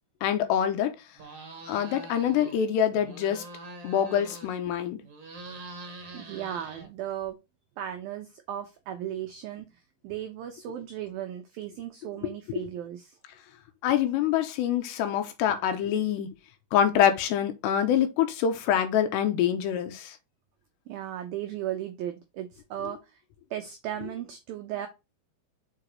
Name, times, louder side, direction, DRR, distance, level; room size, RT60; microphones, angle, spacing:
voice 1, 0.2-1.0 1.7-3.4 3.8-5.0 12.2-12.7 13.8-16.3 16.7-20.2 22.8-22.9, left 9 dB, 80° left, 2.8 m, -25 dB
sound 1, 1.2-2.6 2.9-4.7 5.0-7.3, right 2 dB, 50° right, 1.8 m, -44 dB
voice 2, 6.1-7.4 7.8-9.7 10.0-13.2 20.9-23.0 23.5-24.9, right 11 dB, 90° right, 2.0 m, -36 dB
6.7 x 5.1 x 2.9 m
omnidirectional pair, 5.3 m